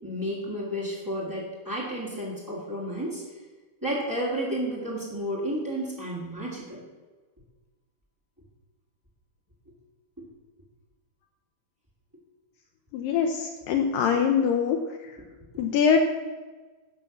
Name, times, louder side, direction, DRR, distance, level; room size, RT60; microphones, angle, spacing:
voice 1, 0.0-3.2 3.8-6.8 13.2-13.4, equal, 20° right, -6 dB, 0.5 m, -32 dB
voice 2, 12.9-14.8 15.6-16.0, left 7 dB, 80° left, 4 dB, 2.2 m, -23 dB
11.5 x 5.2 x 7.1 m, 1.3 s
omnidirectional pair, 4.4 m